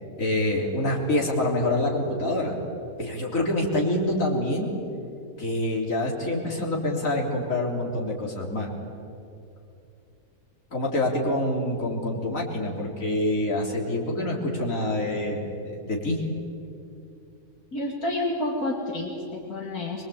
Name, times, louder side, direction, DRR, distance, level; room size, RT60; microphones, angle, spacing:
voice 1, 0.2-2.6 3.0-4.7 5.4-8.7 10.7-16.2, left 1 dB, 65° left, -1 dB, 4.0 m, -26 dB
voice 2, 17.7-20.0, left 1 dB, 85° left, -1 dB, 3.3 m, -29 dB
24.0 x 23.0 x 8.7 m, 2.7 s
omnidirectional pair, 1.5 m